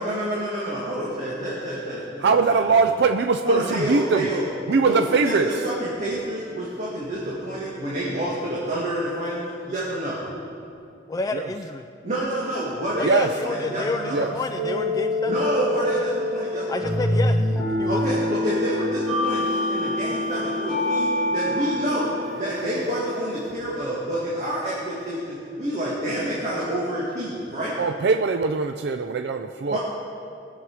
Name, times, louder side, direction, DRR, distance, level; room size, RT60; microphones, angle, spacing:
voice 1, 0.0-2.9 3.4-4.5 4.9-10.2 12.0-14.3 15.3-16.9 17.9-27.8 29.7-29.8, right 1 dB, 40° right, -7 dB, 2.1 m, -28 dB
voice 2, 2.2-4.3 4.7-5.5 11.3-11.5 13.0-13.3 14.1-14.3 27.8-29.8, right 4 dB, 65° right, 7 dB, 0.4 m, -21 dB
voice 3, 11.1-11.8 13.0-15.3 16.7-17.4 17.8-18.2, left 2 dB, 20° left, 5 dB, 0.3 m, -29 dB
sound 1, 13.4-23.5, left 1 dB, ahead, 2.2 m, -26 dB
20.0 x 7.2 x 4.8 m, 2.5 s
head